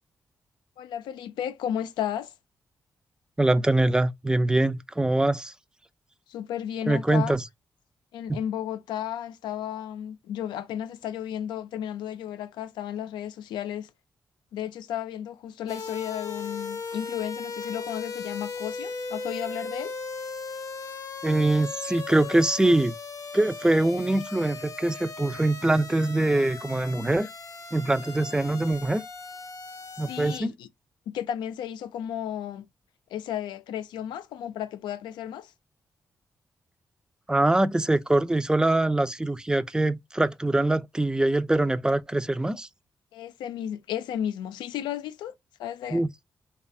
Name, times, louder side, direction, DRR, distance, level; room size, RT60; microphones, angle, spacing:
voice 1, 0.8-2.3 6.3-7.4 8.1-13.9 14.5-19.9 30.1-30.7 31.1-32.6 33.1-35.5 43.1-45.3 45.6-46.0, left 10 dB, 90° left, 0.3 m, -33 dB
voice 2, 3.4-5.5 6.9-7.4 8.3-8.4 21.2-22.9 23.3-27.3 27.7-29.0 30.0-30.5 37.3-42.7 45.9-46.1, right 2 dB, 10° right, 0.4 m, -23 dB
sound 1, 15.7-30.4, left 4 dB, 45° left, 0.6 m, -38 dB
3.2 x 2.3 x 2.6 m
supercardioid pair, 50°, 8 cm